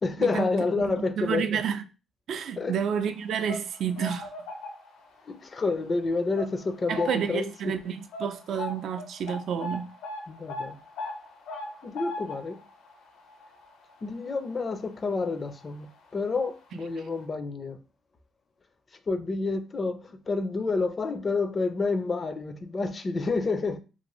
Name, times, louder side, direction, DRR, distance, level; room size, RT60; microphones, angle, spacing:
voice 1, 0.0-1.6 2.6-2.8 5.3-7.7 10.3-10.8 11.8-12.6 14.0-17.8 19.1-23.8, left 3 dB, 35° left, 0.4 m, -29 dB
voice 2, 0.8-1.8 2.3-4.3 6.9-9.9, right 7 dB, 70° right, 0.4 m, -30 dB
sound 1, 3.2-5.2 5.6-5.8 6.4-7.5 7.7-7.8 8.1-15.2 15.5-15.6 16.5-16.6 16.9-17.0, left 2 dB, 80° left, 0.6 m, -39 dB
2.6 x 2.5 x 3.0 m
cardioid pair, 90°, 0 cm